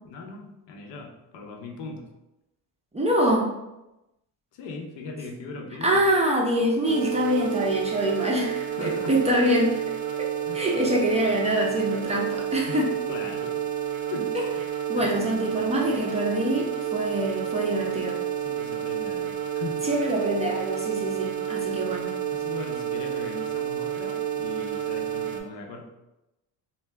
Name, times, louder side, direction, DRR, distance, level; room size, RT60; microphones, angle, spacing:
voice 1, 0.0-2.1 4.5-6.0 8.7-9.1 10.5-10.6 12.7-12.8 13.1-13.6 14.1-14.3 15.0-15.6 18.4-19.8 22.3-25.9, left 3 dB, 80° left, 2 dB, 0.7 m, -39 dB
voice 2, 2.9-3.5 5.8-9.8 10.5-12.9 14.9-18.2 19.8-22.1, right 1 dB, 15° right, -3 dB, 0.4 m, -25 dB
sound 1, 6.8-25.4, right 10 dB, 85° right, 0.6 m, -30 dB
2.7 x 2.2 x 3.2 m, 0.94 s
cardioid pair, 110°, 42 cm